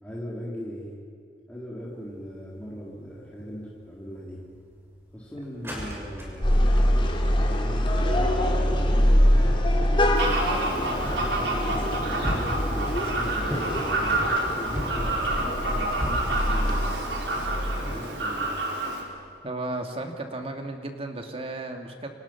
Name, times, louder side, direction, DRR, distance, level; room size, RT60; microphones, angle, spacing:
voice 1, 0.0-1.0 1.5-4.4 5.1-6.4 7.3-9.6 10.4-14.2 14.6-18.6 18.9-19.0, equal, 10° left, -6 dB, 3.5 m, -39 dB
sound 1, 1.9-2.4 2.8-2.9 3.4-3.8 4.4-7.1 7.6-8.1 8.4-8.8 9.6-9.7 10.0-16.9 17.3-17.6 18.0-18.2 19.1-19.3, equal, 15° right, 6.3 m, -36 dB
sound 2, 6.4-18.0, equal, 30° left, 2.9 m, -24 dB
Fowl, 10.2-19.0, right 2 dB, 80° right, 4.6 m, -29 dB
voice 2, 19.4-22.1, right 2 dB, 35° right, 4 dB, 2.5 m, -34 dB
30.0 x 26.0 x 6.0 m, 2.2 s
head